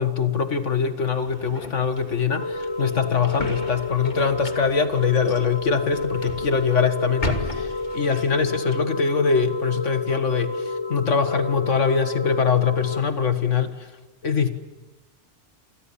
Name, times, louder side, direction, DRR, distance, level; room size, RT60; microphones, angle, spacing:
voice 1, 0.0-13.7 14.2-14.5, left 6 dB, 70° left, 9 dB, 2.0 m, -23 dB
sound 1, 1.1-8.6, left 1 dB, 35° left, 2.9 m, -36 dB
sound 2, 2.3-13.0, left 3 dB, 20° left, 1.3 m, -30 dB
28.5 x 26.0 x 7.2 m, 1.2 s
omnidirectional pair, 1.3 m